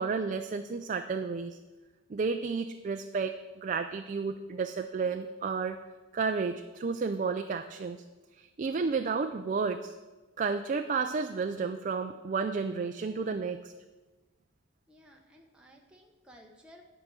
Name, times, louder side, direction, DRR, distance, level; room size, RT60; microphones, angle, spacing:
voice 1, 0.0-1.6 2.1-5.8 6.1-8.0 8.4-9.9 10.4-13.7, right 5 dB, 40° right, 7 dB, 0.3 m, -32 dB
voice 2, 14.9-16.8, equal, 5° right, 0 dB, 0.7 m, -56 dB
10.5 x 4.9 x 7.5 m, 1.2 s
head